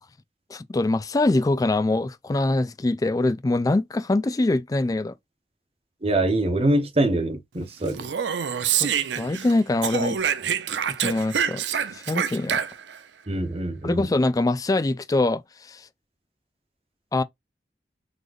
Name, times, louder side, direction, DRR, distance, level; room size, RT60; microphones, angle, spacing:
voice 1, 0.5-5.1 8.8-8.9 9.2-10.2 11.0-11.6 11.9-12.6 13.8-15.9 17.1-17.2, left 2 dB, 20° left, 0.3 m, -23 dB
voice 2, 6.0-8.0 13.3-14.0, right 1 dB, 35° right, 0.9 m, -24 dB
Speech, 7.9-9.5 9.8-13.0, right 8 dB, 80° right, 0.5 m, -26 dB
3.9 x 3.2 x 2.3 m
head